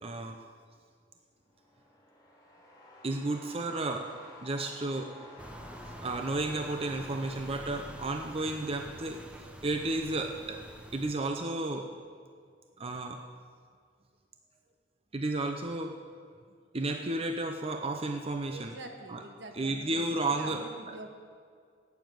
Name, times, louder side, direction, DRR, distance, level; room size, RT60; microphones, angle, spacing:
voice 1, 0.0-0.4 3.0-4.1 4.4-5.1 6.0-10.6 10.9-11.9 12.8-13.2 15.1-15.9 16.7-18.7 19.1-19.2 19.5-20.6, right 2 dB, 35° right, 5 dB, 0.7 m, -32 dB
sound 1, 1.4-8.5, left 2 dB, 25° left, 2.7 m, -52 dB
sound 2, 5.4-11.1, equal, 5° right, 0.9 m, -47 dB
voice 2, 18.5-21.2, right 2 dB, 70° right, 3 dB, 1.6 m, -45 dB
12.0 x 9.4 x 7.8 m, 2.2 s
head